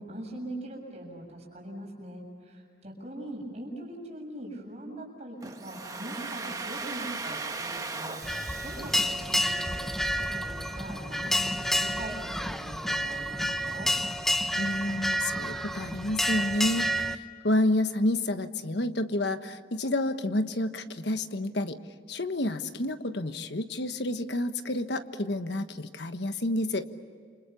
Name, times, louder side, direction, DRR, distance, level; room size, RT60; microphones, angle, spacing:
voice 1, 0.0-13.9, right 1 dB, 35° right, 0 dB, 7.3 m, -42 dB
Domestic sounds home sounds, 5.4-10.2, right 3 dB, 20° right, 1.3 m, -38 dB
sound 1, 8.2-17.2, equal, ahead, 0.8 m, -29 dB
voice 2, 14.6-16.9 17.4-21.8 22.1-26.9, left 1 dB, 65° left, 9 dB, 1.3 m, -29 dB
28.5 x 26.5 x 7.0 m, 2.1 s
head